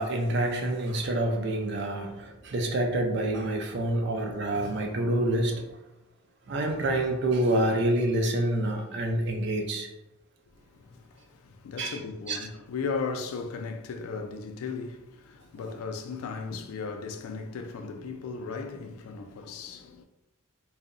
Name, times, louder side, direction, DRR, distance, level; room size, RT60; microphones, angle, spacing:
voice 1, 0.0-5.8 6.5-9.9 11.8-12.0 12.3-12.4, right 1 dB, 55° right, 0.4 m, -27 dB
voice 2, 10.5-20.0, left 4 dB, 90° left, 0.3 m, -36 dB
2.7 x 2.0 x 2.5 m
head